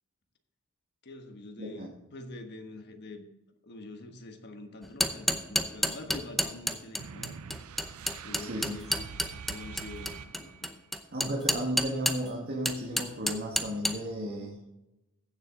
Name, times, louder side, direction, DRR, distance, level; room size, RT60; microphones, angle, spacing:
voice 1, 1.0-3.2 3.6-7.4 8.2-10.7 11.4-11.5, left 2 dB, 50° left, 5 dB, 1.3 m, -45 dB
voice 2, 1.6-1.9 8.3-8.7 11.1-14.6, equal, 45° right, -1 dB, 1.7 m, -34 dB
sound 1, 4.8-12.3 12.7-14.0, equal, ahead, 0.7 m, -29 dB
sound 2, 7.0-10.8, right 6 dB, 70° right, 0.5 m, -45 dB
15.5 x 7.4 x 3.7 m, 0.95 s
head